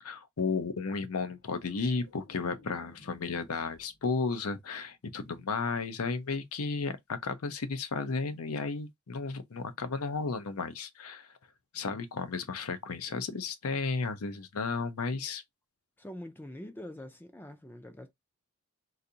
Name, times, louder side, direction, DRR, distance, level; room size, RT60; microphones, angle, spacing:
voice 1, 0.0-11.3 11.7-15.4, left 4 dB, 85° left, 0.6 m, -33 dB
sound 1, 1.3-4.5 4.8-5.2, left 2 dB, 50° left, 1.7 m, -57 dB
voice 2, 16.0-18.1, left 1 dB, 10° left, 0.3 m, -44 dB
4.0 x 2.5 x 2.7 m
head